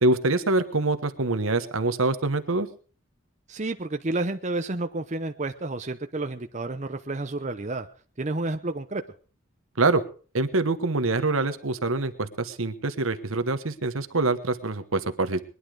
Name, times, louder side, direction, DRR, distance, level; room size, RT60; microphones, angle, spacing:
voice 1, 0.0-2.7 9.8-10.0 10.3-15.4, right 2 dB, 75° right, 10 dB, 1.2 m, -25 dB
voice 2, 3.5-7.9 8.2-9.0, right 2 dB, 35° right, 6 dB, 0.8 m, -30 dB
21.0 x 11.0 x 4.8 m, 0.40 s
head